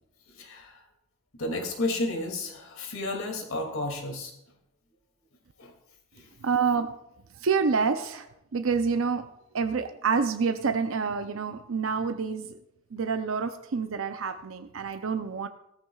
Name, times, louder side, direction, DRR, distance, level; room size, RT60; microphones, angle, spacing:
voice 1, 0.3-0.8 1.4-4.3 5.6-5.7 6.1-6.3, left 2 dB, 80° left, 3 dB, 2.5 m, -32 dB
voice 2, 6.4-6.9 7.4-9.3 9.5-12.6 12.9-15.5, right 5 dB, 75° right, 8 dB, 0.6 m, -28 dB
16.5 x 14.0 x 2.4 m, 0.82 s
head